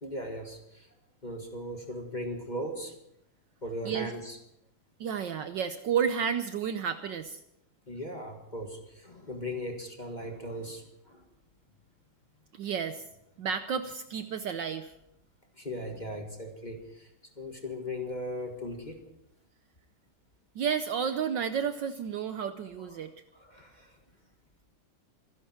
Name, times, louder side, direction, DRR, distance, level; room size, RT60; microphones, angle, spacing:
voice 1, 0.0-0.9 1.2-2.9 3.6-4.4 7.9-11.2 15.6-19.0 22.8-23.1 23.3-24.0, equal, 20° left, 3 dB, 1.6 m, -38 dB
voice 2, 5.0-7.4 12.5-13.0 13.4-14.9 20.5-23.1, right 7 dB, 65° right, 10 dB, 1.2 m, -31 dB
25.5 x 11.5 x 4.4 m, 0.80 s
omnidirectional pair, 2.4 m